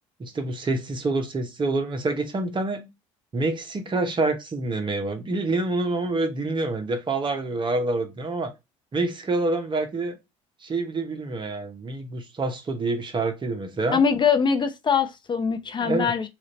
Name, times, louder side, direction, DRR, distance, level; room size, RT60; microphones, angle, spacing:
voice 1, 0.2-2.9 3.3-8.5 8.9-10.2 10.6-14.0 15.8-16.1, right 2 dB, 30° right, 1.1 m, -27 dB
voice 2, 13.9-16.3, left 6 dB, 25° left, 0.7 m, -22 dB
3.1 x 2.6 x 4.1 m
hypercardioid pair, 60°, 17 cm